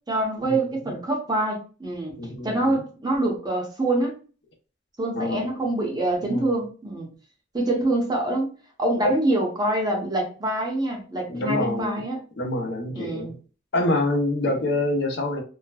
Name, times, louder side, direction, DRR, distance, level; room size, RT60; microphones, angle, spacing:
voice 1, 0.1-4.1 5.0-7.1 7.5-8.5 8.8-12.2 12.9-13.3, right 1 dB, 20° right, 0.8 m, -25 dB
voice 2, 2.2-2.8 5.1-5.5 6.2-6.5 11.3-12.0 12.4-13.3 13.7-15.4, left 2 dB, 65° left, 0.6 m, -26 dB
3.1 x 2.1 x 2.2 m
head